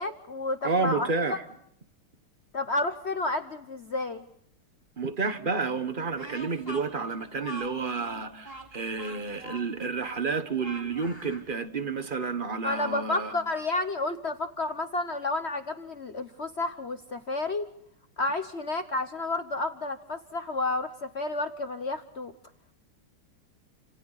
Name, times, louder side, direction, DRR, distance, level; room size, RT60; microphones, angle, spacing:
voice 1, 0.0-1.4 2.5-4.2 12.6-17.7 18.2-22.3, left 2 dB, 50° left, 0.8 m, -31 dB
voice 2, 0.6-1.4 5.0-13.3, right 4 dB, 30° right, 1.0 m, -30 dB
Speech, 6.1-11.5, equal, 10° left, 3.7 m, -43 dB
29.5 x 27.0 x 4.1 m
omnidirectional pair, 2.4 m